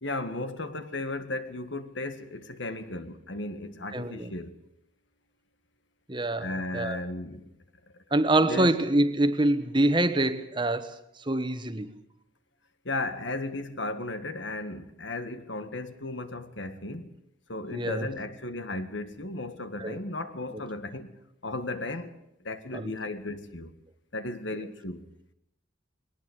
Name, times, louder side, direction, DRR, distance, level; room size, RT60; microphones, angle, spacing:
voice 1, 0.0-4.6 6.4-7.5 7.9-8.0 8.4-8.8 12.8-17.1 17.5-21.1 21.4-22.2 22.4-23.7 24.1-25.1, left 2 dB, 75° left, 1.9 m, -35 dB
voice 2, 3.9-4.3 6.1-7.0 8.1-11.9 17.7-18.1 19.8-20.0 20.5-20.6 22.7-22.9 24.5-24.6, right 1 dB, 25° right, 1.2 m, -26 dB
21.5 x 19.0 x 8.1 m
head